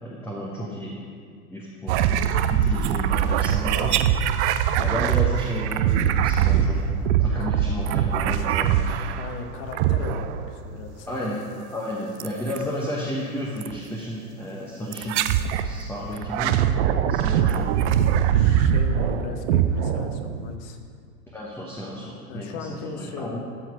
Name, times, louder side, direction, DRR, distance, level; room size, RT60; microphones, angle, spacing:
voice 1, 0.0-0.9 1.5-2.2 2.5-4.0 4.8-6.8 7.2-8.9 11.1-11.4 11.7-15.2 15.6-16.7 17.1-18.0 21.3-23.4, equal, 5° left, -5 dB, 1.0 m, -32 dB
sound 1, 1.9-9.3 9.7-10.5 12.2-12.6 13.6-13.8 14.9-15.7 16.2-20.5, right 9 dB, 50° right, 0.5 m, -22 dB
voice 2, 9.2-11.2 18.3-20.8 22.3-23.4, left 5 dB, 50° left, 5 dB, 1.2 m, -37 dB
13.5 x 4.5 x 4.9 m, 2.2 s
hypercardioid pair, 105°, 47 cm